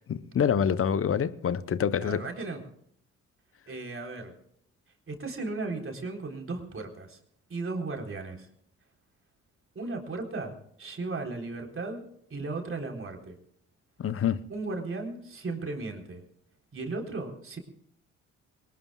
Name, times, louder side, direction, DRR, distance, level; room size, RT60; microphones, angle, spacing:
voice 1, 0.1-2.3 14.0-14.5, left 8 dB, 40° left, 0.9 m, -26 dB
voice 2, 2.0-2.6 3.7-4.3 5.1-7.2 7.5-8.5 9.8-12.0 12.3-13.4 14.5-16.2 16.7-17.6, right 3 dB, 40° right, 3.9 m, -36 dB
23.0 x 19.5 x 2.4 m
hypercardioid pair, 50°, 34 cm